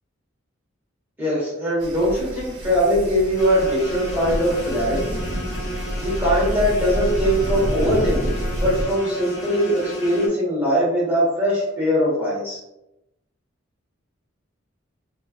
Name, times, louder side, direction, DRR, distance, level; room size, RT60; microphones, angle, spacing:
voice 1, 1.2-5.1 6.0-12.6, equal, 10° right, -8 dB, 1.2 m, -21 dB
sound 1, 1.8-8.8, equal, 55° right, 0.8 m, -28 dB
sound 2, 3.4-10.3, equal, 35° left, 1.1 m, -33 dB
4.1 x 2.5 x 2.4 m, 0.90 s
head